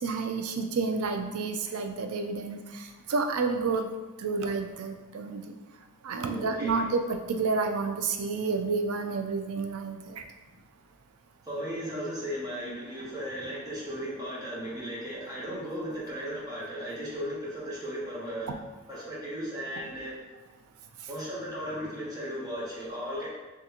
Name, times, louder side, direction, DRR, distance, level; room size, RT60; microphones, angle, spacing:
voice 1, 0.0-3.9 4.2-5.5 6.0-10.2, right 4 dB, 85° right, 5 dB, 0.4 m, -30 dB
voice 2, 6.3-6.9 11.4-18.5 18.9-20.2 21.1-23.3, equal, 15° right, -7 dB, 1.1 m, -36 dB
3.7 x 3.3 x 2.8 m, 1.2 s
head